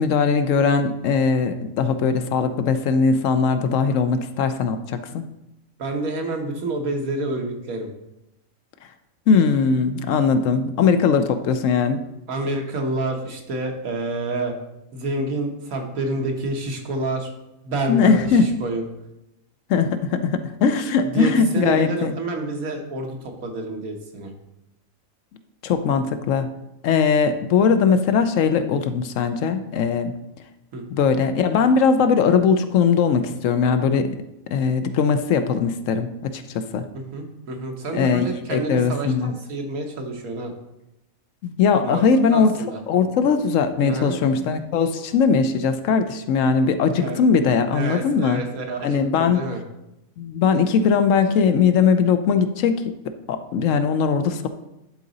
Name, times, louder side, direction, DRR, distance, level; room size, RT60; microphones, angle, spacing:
voice 1, 0.0-5.2 9.3-12.0 17.9-18.5 19.7-22.1 25.6-26.5 26.8-30.2 30.9-34.1 34.5-36.9 37.9-39.3 41.4-42.5 42.9-48.4 48.8-49.4 50.2-52.9 53.3-54.5, left 5 dB, 70° left, 9 dB, 0.9 m, -20 dB
voice 2, 5.8-7.9 12.3-14.5 14.9-17.3 17.6-18.8 21.0-24.3 30.7-30.8 36.9-40.5 41.8-42.0 42.3-42.8 43.8-44.1 47.0-47.2 47.7-49.6, right 2 dB, 85° right, 2 dB, 1.6 m, -28 dB
11.5 x 3.9 x 4.0 m, 0.90 s
omnidirectional pair, 1.4 m